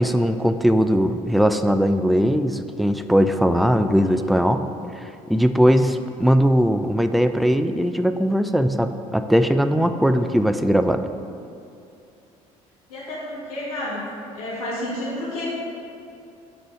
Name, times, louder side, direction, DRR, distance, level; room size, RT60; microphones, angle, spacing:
voice 1, 0.0-4.6 5.3-11.0, equal, ahead, 9 dB, 0.3 m, -19 dB
voice 2, 12.9-14.0 14.3-15.5, left 1 dB, 80° left, -7 dB, 1.5 m, -30 dB
9.2 x 3.9 x 3.9 m, 2.6 s
figure-of-eight pair, 55°, 18 cm